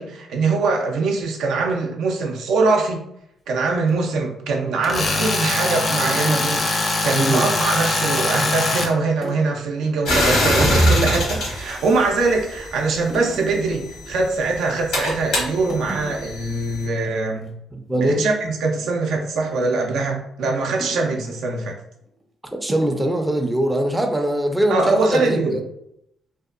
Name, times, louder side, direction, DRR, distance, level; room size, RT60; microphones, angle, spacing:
voice 1, 0.0-3.0 3.5-17.5 18.0-21.7 24.7-25.6, right 3 dB, 80° right, 2 dB, 0.4 m, -22 dB
sound 1, 4.6-7.2 7.5-7.7 8.0-8.6 9.2-9.6 9.8-10.0 10.3-11.1 11.7-12.2 12.5-14.7 15.1-15.3 15.6-16.5 16.8-17.0 17.3-17.5 17.9-19.7 20.8-21.5 22.1-22.2 22.7-23.1, right 1 dB, 40° right, 0.7 m, -39 dB
Tools, 4.8-8.9, left 2 dB, 40° left, 0.5 m, -22 dB
voice 2, 7.1-7.4 17.7-18.2 22.6-25.6, right 1 dB, 10° right, 3 dB, 0.4 m, -21 dB
sound 2, 10.1-12.7 13.6-16.8, equal, 85° left, 1.0 m, -22 dB
2.7 x 2.1 x 2.4 m, 0.77 s
cardioid pair, 90°, 0 cm